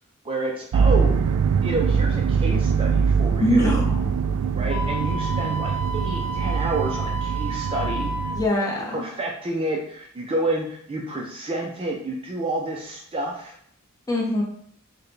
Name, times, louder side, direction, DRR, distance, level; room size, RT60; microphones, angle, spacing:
voice 1, 0.2-1.2 1.6-3.8 4.6-8.3 8.9-13.6, right 2 dB, 25° right, 0 dB, 0.4 m, -29 dB
sound 1, 0.7-8.5, right 6 dB, 90° right, 0.3 m, -23 dB
voice 2, 3.4-4.1 8.3-9.0 14.1-14.4, left 1 dB, 15° left, -3 dB, 0.8 m, -22 dB
Wind instrument woodwind instrument, 4.7-8.4, right 1 dB, 70° left, 0.7 m, -32 dB
4.6 x 2.2 x 3.2 m, 0.64 s
head